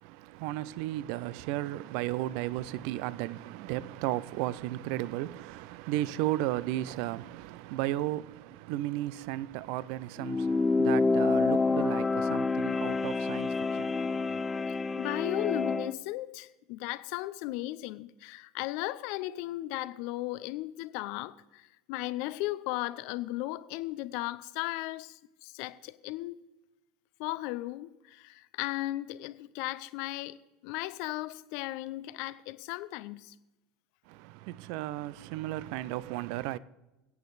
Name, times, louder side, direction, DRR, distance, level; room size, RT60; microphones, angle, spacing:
voice 1, 0.0-14.4 34.1-36.6, right 15 dB, 65° right, 0.5 m, -34 dB
sound 1, 10.2-15.9, left 3 dB, 20° left, 0.5 m, -28 dB
voice 2, 15.0-26.4 27.2-30.4 30.6-33.4, left 17 dB, 65° left, 0.5 m, -36 dB
21.5 x 8.5 x 4.0 m
hypercardioid pair, 85°, 0 cm